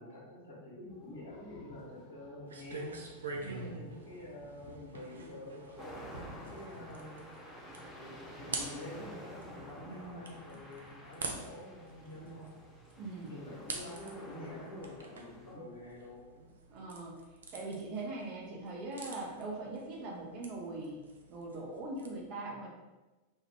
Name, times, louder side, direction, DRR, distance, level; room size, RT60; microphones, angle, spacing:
voice 1, 0.0-3.0 3.4-7.3 7.9-12.6 13.2-16.5, left 1 dB, 70° left, -5 dB, 1.1 m, -48 dB
sound 1, 0.9-12.7, left 1 dB, 40° left, 0.6 m, -57 dB
sound 2, 2.5-22.1, right 3 dB, 70° right, 0.4 m, -47 dB
voice 2, 3.4-3.8 9.8-10.2 13.0-13.3 16.7-17.2 17.5-21.0 21.3-22.8, right 2 dB, 40° right, -1 dB, 0.7 m, -41 dB
sound 3, 5.8-15.5, equal, 5° left, 0.7 m, -50 dB
3.1 x 2.4 x 3.2 m, 1.1 s
figure-of-eight pair, 90°, 0 cm